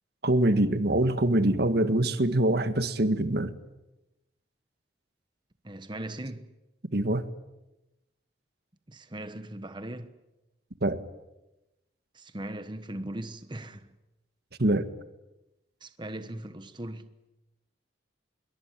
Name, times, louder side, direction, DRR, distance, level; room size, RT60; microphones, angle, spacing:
voice 1, 0.2-3.5 6.9-7.3 10.8-11.0 14.6-14.9, right 1 dB, 60° right, 1.7 m, -24 dB
voice 2, 5.6-6.5 8.9-10.2 12.1-13.9 15.8-17.1, right 1 dB, 25° right, 1.2 m, -39 dB
26.5 x 23.0 x 9.2 m
head